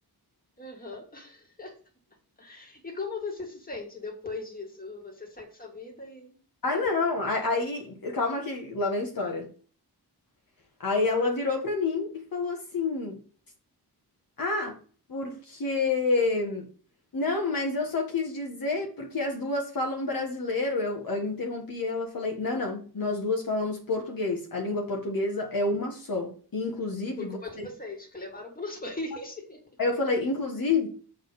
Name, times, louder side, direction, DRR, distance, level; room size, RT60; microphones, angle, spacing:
voice 1, 0.6-1.8 2.4-6.4 6.7-7.0 27.2-29.6, left 3 dB, 20° left, 2.3 m, -39 dB
voice 2, 6.6-9.5 10.8-13.2 14.4-14.8 15.1-16.7 17.1-27.3 27.6-27.7 29.8-30.9, left 3 dB, 60° left, 1.5 m, -28 dB
7.3 x 3.8 x 5.8 m
wide cardioid pair, 110°, 39 cm